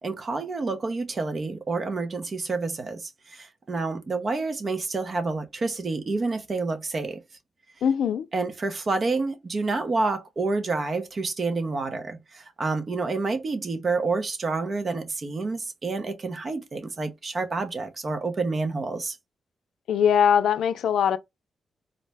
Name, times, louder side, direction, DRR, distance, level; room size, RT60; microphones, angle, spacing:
voice 1, 0.0-7.2 8.3-19.2, right 3 dB, 45° right, 0.7 m, -28 dB
voice 2, 7.8-8.3 19.9-21.2, left 8 dB, 85° left, 0.3 m, -21 dB
3.9 x 2.1 x 3.3 m
cardioid pair, 75°, 0 cm